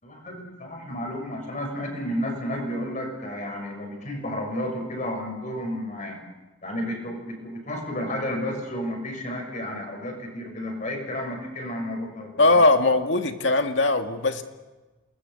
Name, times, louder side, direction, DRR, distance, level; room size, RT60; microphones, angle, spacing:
voice 1, 0.0-6.2 6.6-12.6, left 1 dB, 40° left, 2 dB, 6.9 m, -32 dB
voice 2, 12.4-14.4, left 2 dB, 70° left, 5 dB, 2.1 m, -20 dB
28.5 x 20.5 x 7.1 m, 1.2 s
head